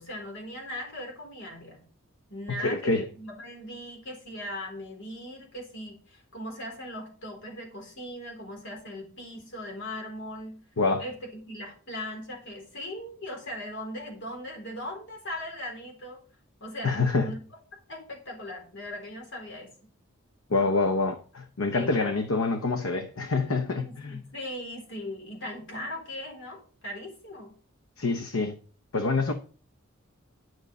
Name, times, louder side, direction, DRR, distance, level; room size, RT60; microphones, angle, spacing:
voice 1, 0.0-1.8 2.3-10.6 11.0-16.2 16.6-17.4 17.9-19.7 21.6-22.2 23.8-27.5, left 1 dB, 60° left, 3.9 m, -39 dB
voice 2, 2.6-3.0 10.8-11.0 16.8-17.3 20.5-24.2 28.0-28.6 28.9-29.3, left 3 dB, 75° left, 0.8 m, -26 dB
11.0 x 6.2 x 5.3 m
head